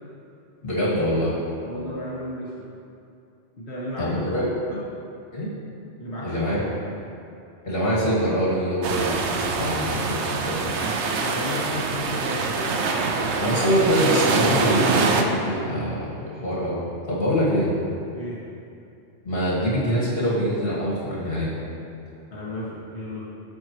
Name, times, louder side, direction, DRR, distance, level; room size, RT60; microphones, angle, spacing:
voice 1, 0.6-1.3 4.0-4.4 5.3-5.5 6.2-6.6 7.6-10.8 13.4-16.8 17.1-17.7 19.2-21.5, equal, 60° left, -7 dB, 2.1 m, -24 dB
voice 2, 1.6-2.7 3.6-4.2 4.7-4.8 6.0-6.5 11.2-12.7 17.3-17.4 18.1-18.4 22.3-23.3, left 1 dB, 75° left, -9 dB, 2.1 m, -33 dB
sound 1, 8.8-15.2, right 4 dB, 90° right, 0.9 m, -24 dB
10.5 x 6.7 x 3.1 m, 2.6 s
omnidirectional pair, 1.1 m